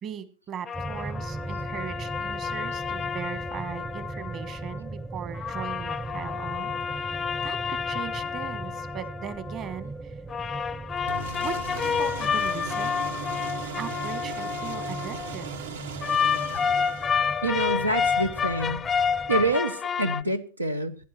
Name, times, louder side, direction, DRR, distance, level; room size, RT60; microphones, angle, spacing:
voice 1, 0.0-10.2 11.4-13.0 13.8-15.5, right 9 dB, 30° right, 13 dB, 1.5 m, -39 dB
sound 1, 0.7-4.8 5.3-9.8 10.3-15.4 16.0-20.2, left 6 dB, 20° left, 0.5 m, -29 dB
sound 2, 0.7-19.6, right 2 dB, 15° right, 0.8 m, -39 dB
sound 3, 11.1-17.6, right 5 dB, 60° right, 1.4 m, -38 dB
voice 2, 17.4-18.8 19.3-21.0, right 2 dB, 85° right, 10 dB, 0.9 m, -26 dB
16.5 x 11.0 x 4.3 m, 0.35 s
figure-of-eight pair, 90°, 0 cm